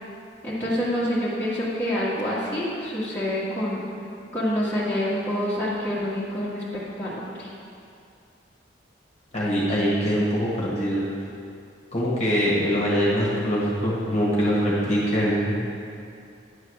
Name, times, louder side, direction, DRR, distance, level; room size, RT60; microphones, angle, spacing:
voice 1, 0.4-3.8 4.3-7.5, equal, 10° left, -10 dB, 1.6 m, -27 dB
voice 2, 9.3-11.0 11.9-15.6, equal, 35° left, -6 dB, 1.5 m, -23 dB
10.0 x 3.9 x 6.5 m, 2.5 s
head